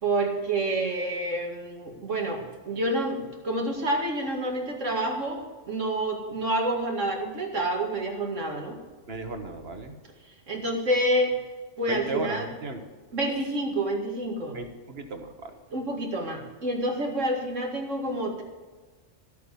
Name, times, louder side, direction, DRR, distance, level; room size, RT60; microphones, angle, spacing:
voice 1, 0.0-8.8 10.5-11.4 11.8-12.5 13.1-14.6 15.7-18.4, right 1 dB, 90° right, 0 dB, 2.6 m, -28 dB
voice 2, 9.1-10.0 11.9-12.8 14.5-15.5, right 2 dB, 55° right, 6 dB, 1.7 m, -35 dB
14.0 x 8.3 x 6.9 m, 1.3 s
omnidirectional pair, 1.3 m